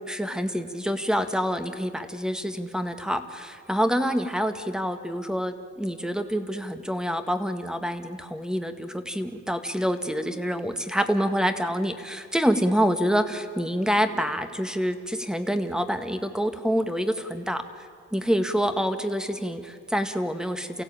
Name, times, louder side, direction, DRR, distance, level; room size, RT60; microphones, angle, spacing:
voice 1, 0.0-20.8, equal, ahead, 8 dB, 1.7 m, -27 dB
29.0 x 16.5 x 8.9 m, 2.1 s
cardioid pair, 95°, 30 cm